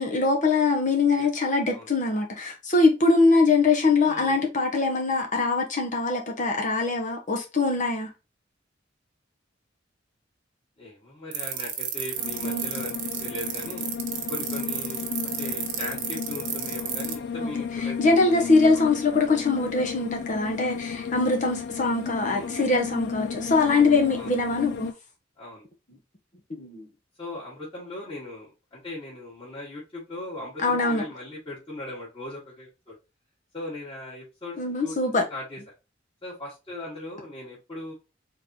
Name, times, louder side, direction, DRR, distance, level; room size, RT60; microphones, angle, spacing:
voice 1, 0.0-8.1 12.4-12.7 17.4-17.5 18.0-24.9 26.6-26.8 30.6-31.0 34.6-35.2, left 3 dB, 40° left, 1.0 m, -23 dB
voice 2, 4.0-4.5 10.8-13.9 14.3-18.8 19.9-20.1 22.3-22.5 24.2-24.4 25.4-25.6 27.2-32.9 33.5-35.0 35.3-35.6 36.2-37.9, left 1 dB, 25° left, 2.3 m, -39 dB
sound 1, 11.3-17.1, right 12 dB, 80° right, 1.2 m, -30 dB
sound 2, 12.2-24.9, left 6 dB, 60° left, 0.4 m, -34 dB
4.6 x 3.9 x 2.8 m
head